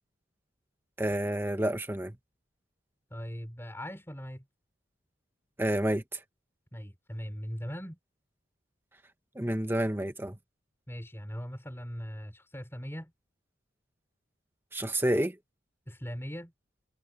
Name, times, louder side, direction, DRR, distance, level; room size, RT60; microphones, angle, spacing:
voice 1, 1.0-2.2 5.6-6.0 9.4-10.4 14.7-15.4, right 1 dB, 10° right, 1.7 m, -29 dB
voice 2, 3.1-4.4 6.7-8.0 10.9-13.1 15.9-16.5, equal, 10° left, 5.8 m, -40 dB
head